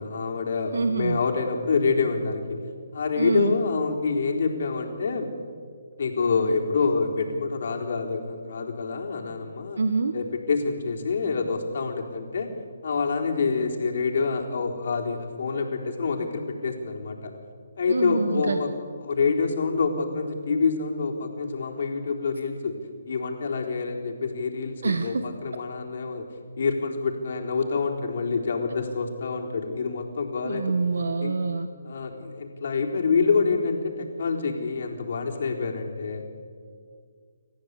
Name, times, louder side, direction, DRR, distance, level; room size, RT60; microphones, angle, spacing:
voice 1, 0.0-2.6 2.9-5.3 6.0-9.8 10.1-12.5 12.8-17.3 17.8-18.7 19.0-22.8 23.1-26.3 26.6-30.6 31.2-31.3 31.8-36.2, left 4 dB, 60° left, 1 dB, 4.0 m, -27 dB
voice 2, 0.7-1.2 3.2-3.6 9.8-10.1 17.9-18.6 24.8-25.3 30.4-31.7, right 4 dB, 75° right, 9 dB, 1.3 m, -26 dB
28.5 x 14.0 x 8.4 m, 2.1 s
hypercardioid pair, 160°, 0 cm